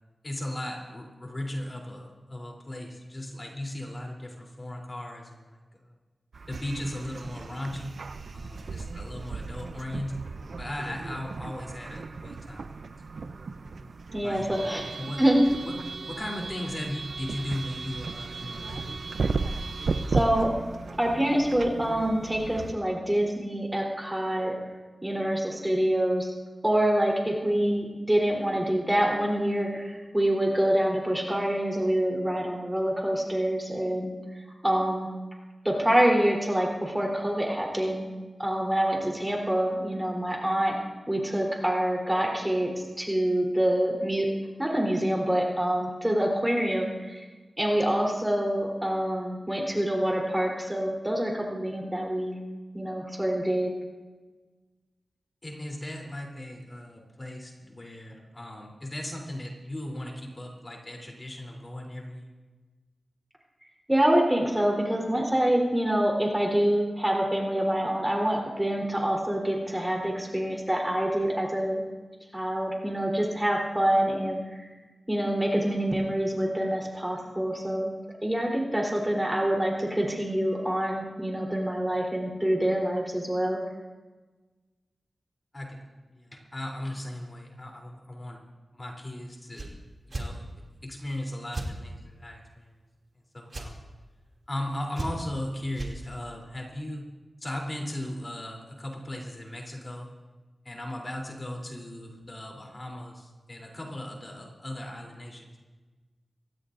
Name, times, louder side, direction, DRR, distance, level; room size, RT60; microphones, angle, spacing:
voice 1, 0.2-5.9 6.5-8.0 8.3-10.3 10.6-12.9 14.2-14.6 15.0-15.2 15.6-15.7 16.1-19.0 55.4-62.3 85.5-88.4 88.7-89.7 90.1-90.4 90.8-92.7 93.3-93.8 94.5-97.1 97.4-100.1 100.6-105.6, left 1 dB, 35° left, 0 dB, 3.4 m, -37 dB
sound 1, 6.3-22.7, right 4 dB, 80° right, 0.6 m, -35 dB
voice 2, 14.1-15.4 20.1-20.5 21.0-24.5 25.0-26.3 26.6-34.1 34.6-35.1 35.6-38.1 38.4-40.8 41.1-42.7 43.0-44.3 44.6-47.2 47.6-52.4 52.7-53.7 63.9-71.8 72.3-74.7 75.1-77.9 78.2-83.6, right 1 dB, 15° right, -1 dB, 3.6 m, -26 dB
sound 2, 89.5-89.7 90.1-90.3 91.5-91.7 93.5-93.7 94.9-95.4 95.7-95.9, right 2 dB, 55° right, 2.6 m, -33 dB
24.0 x 17.0 x 2.6 m, 1.3 s
cardioid pair, 55°, 0 cm